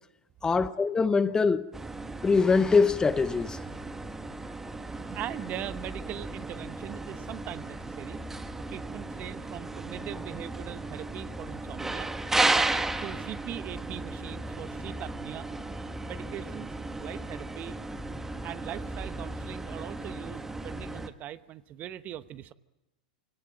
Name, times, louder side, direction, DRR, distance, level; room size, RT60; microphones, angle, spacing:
voice 1, 0.4-1.7 2.2-3.6, left 4 dB, 15° left, 0.8 m, -23 dB
sound 1, 1.7-21.1, right 2 dB, 10° right, 1.4 m, -34 dB
voice 2, 4.9-8.2 8.7-12.1 13.0-15.5 16.1-16.7 17.0-17.8 18.4-22.5, right 12 dB, 35° right, 1.0 m, -41 dB
25.0 x 18.0 x 9.3 m
hypercardioid pair, 110°, 5 cm